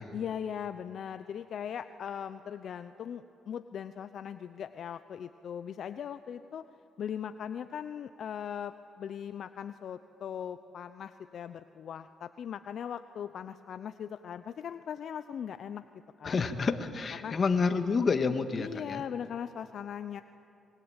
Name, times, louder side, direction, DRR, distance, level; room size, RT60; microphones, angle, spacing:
voice 1, 0.1-6.6 7.0-15.8 16.2-16.4 17.2-17.3 18.6-20.2, left 8 dB, 65° left, 11 dB, 0.7 m, -39 dB
voice 2, 16.2-19.0, left 4 dB, 40° left, 8 dB, 1.8 m, -29 dB
26.0 x 22.5 x 9.0 m, 2.7 s
cardioid pair, 90°, 0 cm